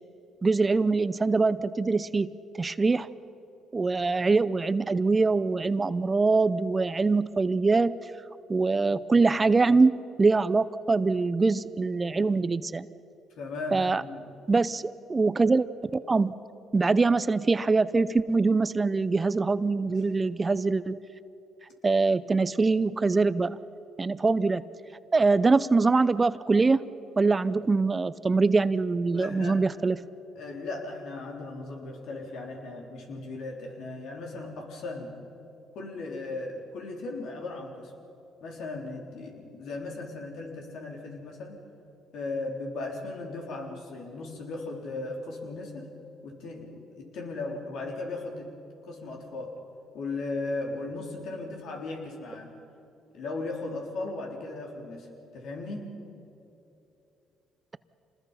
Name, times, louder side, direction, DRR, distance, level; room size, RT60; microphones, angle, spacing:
voice 1, 0.4-3.1 3.7-8.0 8.5-12.9 13.7-14.0 14.5-15.7 16.1-16.3 16.7-21.0 21.8-23.6 24.0-24.6 25.1-26.8 27.2-30.0, right 3 dB, 25° right, 16 dB, 0.6 m, -23 dB
voice 2, 13.4-14.2 19.9-20.0 29.1-29.7 30.4-35.2 35.7-37.9 38.4-41.6 42.1-45.9 46.2-48.5 48.8-49.6 49.9-52.6 53.1-55.1 55.3-55.9, left 2 dB, 70° left, 1 dB, 3.9 m, -37 dB
26.5 x 20.0 x 5.7 m, 2.9 s
supercardioid pair, 75°, 0 cm